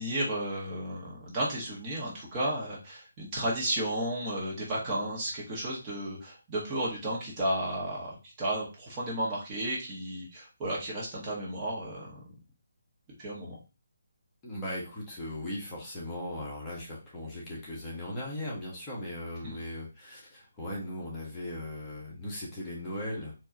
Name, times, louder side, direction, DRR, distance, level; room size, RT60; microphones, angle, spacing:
voice 1, 0.0-12.2 13.2-13.6 19.4-19.6, right 1 dB, 20° right, -5 dB, 1.6 m, -33 dB
voice 2, 14.4-23.3, left 1 dB, 15° left, -5 dB, 1.4 m, -38 dB
4.5 x 2.9 x 2.8 m, 0.30 s
figure-of-eight pair, 155°, 0 cm